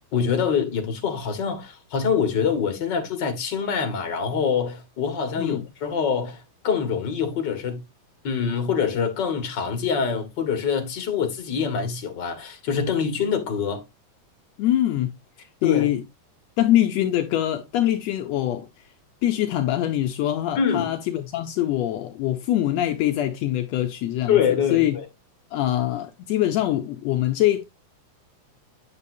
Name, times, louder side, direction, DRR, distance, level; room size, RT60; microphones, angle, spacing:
voice 1, 0.1-7.8 8.2-13.8 15.6-15.9 20.6-20.9 24.3-25.0, left 6 dB, 40° left, 1.8 m, -25 dB
voice 2, 14.6-15.1 15.6-16.0 16.6-18.7 19.2-24.9 25.5-27.6, left 13 dB, 80° left, 1.5 m, -23 dB
9.0 x 6.9 x 2.7 m
omnidirectional pair, 3.8 m